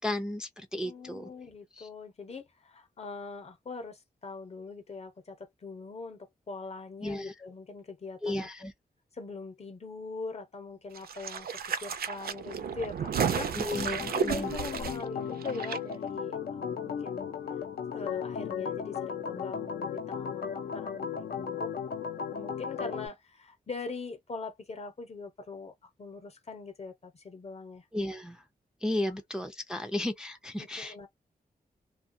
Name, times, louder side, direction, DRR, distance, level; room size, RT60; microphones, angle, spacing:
voice 1, 0.0-1.3 1.8-1.9 7.0-7.3 8.2-8.7 13.6-14.5 27.9-28.4 28.8-31.1, left 1 dB, 5° right, 0.4 m, -34 dB
voice 2, 0.8-8.5 9.1-11.5 11.8-13.6 14.1-17.4 17.9-21.7 22.3-27.8 29.1-29.2 30.6-31.1, left 4 dB, 40° left, 0.8 m, -42 dB
sound 1, 10.9-15.8 16.1-16.2, right 7 dB, 80° right, 0.5 m, -33 dB
Organ, 13.7-23.1, left 7 dB, 80° left, 0.6 m, -35 dB
2.3 x 2.2 x 2.6 m
wide cardioid pair, 100°, 16 cm